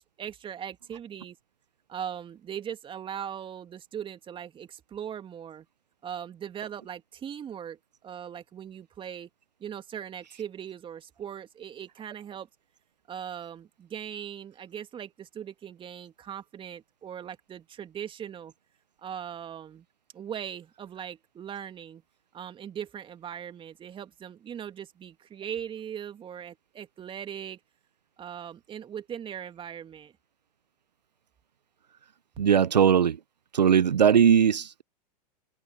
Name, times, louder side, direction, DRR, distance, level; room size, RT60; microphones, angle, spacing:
voice 1, 0.0-1.4 1.9-5.7 6.0-9.3 9.6-12.5 13.1-18.5 19.0-19.8 20.1-22.0 22.3-27.6 28.2-30.1, right 9 dB, 25° right, 2.6 m, -39 dB
voice 2, 32.4-33.2 33.5-34.8, right 8 dB, 85° right, 0.7 m, -20 dB
hypercardioid pair, 100°, 21 cm